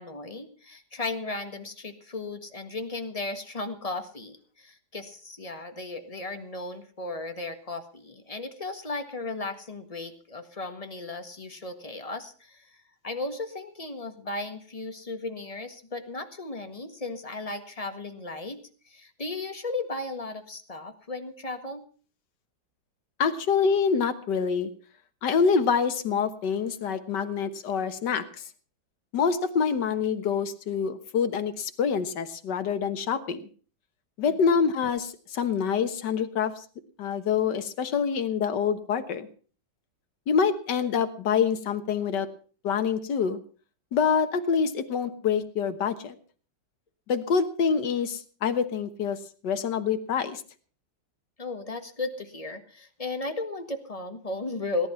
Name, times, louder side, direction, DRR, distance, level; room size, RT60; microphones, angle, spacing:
voice 1, 0.0-12.8 13.0-21.9 34.2-34.4 51.4-54.9, left 2 dB, 20° left, 7 dB, 1.5 m, -35 dB
voice 2, 23.2-24.7 25.2-28.4 29.1-33.5 34.2-36.6 37.0-39.3 40.3-42.3 42.6-43.4 43.9-46.2 47.1-49.2 49.4-50.4, left 6 dB, 65° left, 9 dB, 1.8 m, -26 dB
18.0 x 11.0 x 5.7 m, 0.41 s
omnidirectional pair, 2.0 m